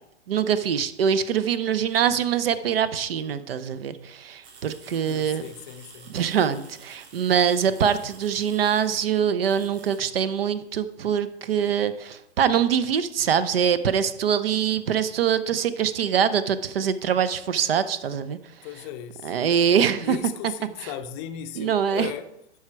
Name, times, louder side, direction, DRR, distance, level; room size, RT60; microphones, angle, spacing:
voice 1, 0.3-5.5 6.1-18.4 19.2-20.2 20.8-20.9 21.5-22.1, right 8 dB, 55° right, 14 dB, 0.8 m, -24 dB
sound 1, 4.4-9.1 9.5-10.0, right 5 dB, 35° right, 2.6 m, -50 dB
voice 2, 4.9-6.1 18.6-19.3 20.0-22.3, left 9 dB, 25° left, 9 dB, 0.6 m, -36 dB
13.0 x 4.9 x 4.5 m, 0.82 s
figure-of-eight pair, 120°, 34 cm